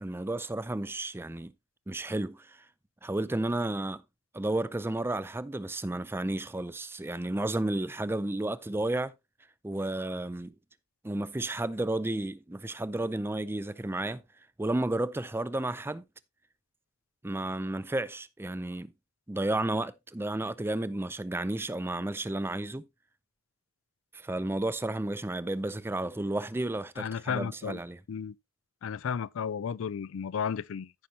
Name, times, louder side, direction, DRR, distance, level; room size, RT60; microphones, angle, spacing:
voice 1, 0.0-1.5 1.9-2.6 3.0-4.0 4.3-9.1 9.6-10.5 11.0-14.2 14.6-16.0 17.2-18.9 19.3-22.9 24.1-28.0, right 2 dB, 10° right, 0.4 m, -32 dB
voice 2, 27.0-27.8 28.1-28.3 28.8-30.9, left 7 dB, 65° left, 0.4 m, -33 dB
14.5 x 5.8 x 2.8 m
head